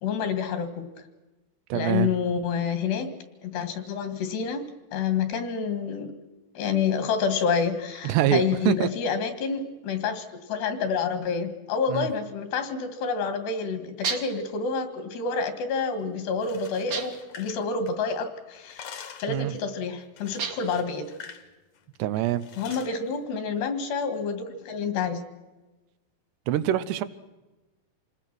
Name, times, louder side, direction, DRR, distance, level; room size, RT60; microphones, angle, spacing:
voice 1, 0.0-0.9 1.7-3.1 3.4-6.1 6.6-21.1 22.6-25.2, left 5 dB, 80° left, 9 dB, 4.0 m, -28 dB
voice 2, 1.7-2.1 8.0-8.9 11.9-12.1 19.3-19.5 22.0-22.5 26.5-27.0, right 12 dB, 85° right, 13 dB, 3.0 m, -25 dB
sound 1, 14.0-14.5 16.9-17.4 20.4-20.8, right 6 dB, 55° right, 1.7 m, -32 dB
sound 2, 16.3-18.2 18.5-19.4 20.2-21.5 21.8-21.9 22.4-22.9, left 7 dB, 60° left, 2.0 m, -45 dB
26.5 x 20.0 x 6.0 m, 1.1 s
omnidirectional pair, 4.7 m